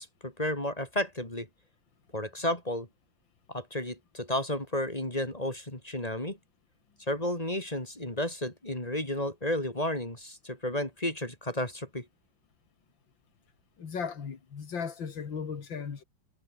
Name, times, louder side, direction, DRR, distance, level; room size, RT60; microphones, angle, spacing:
voice 1, 0.0-1.5 2.1-2.9 3.5-6.4 7.1-12.1, left 1 dB, 20° left, 4.2 m, -32 dB
voice 2, 13.8-16.0, left 6 dB, 90° left, 3.0 m, -36 dB
omnidirectional pair, 2.0 m